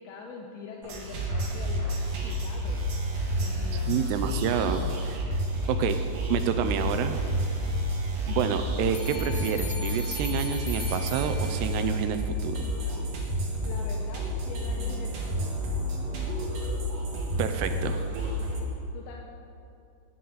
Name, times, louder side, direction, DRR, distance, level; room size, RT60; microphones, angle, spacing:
voice 1, 0.0-2.8 3.4-4.2 5.5-5.6 13.6-15.6 18.9-19.2, left 4 dB, 80° left, 0 dB, 3.0 m, -43 dB
sound 1, 0.8-18.6, equal, 55° right, 3.2 m, -30 dB
voice 2, 3.9-5.2 5.7-6.0 6.3-7.2 8.3-12.6 17.4-18.0, right 8 dB, 80° right, 8 dB, 2.6 m, -29 dB
sound 2, 8.9-12.0, left 2 dB, 60° left, 3.6 m, -39 dB
18.5 x 11.5 x 4.0 m, 2.7 s
omnidirectional pair, 5.2 m